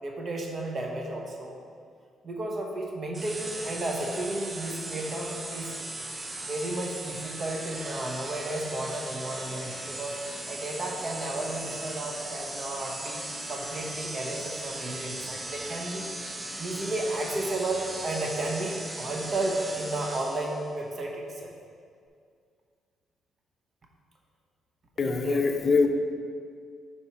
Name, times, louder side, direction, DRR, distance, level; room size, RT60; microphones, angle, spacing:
voice 1, 0.0-1.6 2.2-5.7 6.4-10.2 10.5-13.2 13.5-21.5 25.0-25.4, right 2 dB, 45° right, 0 dB, 0.9 m, -33 dB
sound 1, 3.1-20.7, right 2 dB, 20° right, 0.5 m, -38 dB
voice 2, 25.0-25.9, left 4 dB, 40° left, 6 dB, 0.5 m, -23 dB
5.4 x 4.4 x 4.5 m, 2.2 s
cardioid pair, 90°, 0 cm